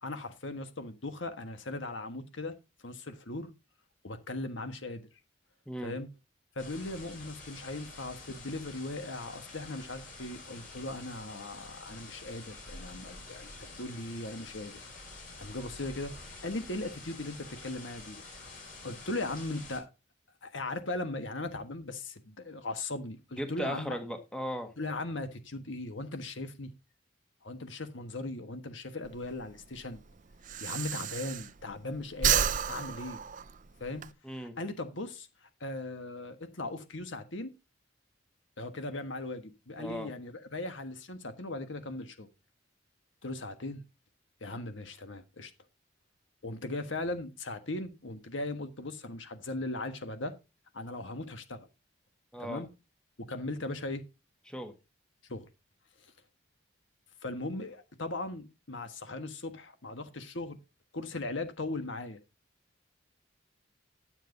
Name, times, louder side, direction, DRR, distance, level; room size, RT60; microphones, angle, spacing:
voice 1, 0.0-2.5 2.8-3.5 4.0-5.0 5.8-6.1 6.5-14.8 15.4-18.2 18.8-19.9 20.4-24.0 24.8-26.7 27.4-30.0 30.6-33.2 33.8-35.3 35.6-37.5 38.6-42.3 43.2-43.8 44.4-45.5 46.4-50.3 50.7-51.7 52.4-52.7 53.2-54.0 55.3-55.5 57.2-60.6 60.9-62.2, left 2 dB, 70° left, 1.5 m, -38 dB
sound 1, 6.6-19.8, left 3 dB, 45° left, 6.3 m, -48 dB
voice 2, 23.4-24.7 34.2-34.6 39.8-40.1 52.3-52.6 54.5-54.7, equal, 5° left, 1.5 m, -37 dB
Breathing, 29.0-31.8 32.1-34.1, right 8 dB, 40° right, 0.6 m, -31 dB
11.5 x 7.5 x 3.9 m
head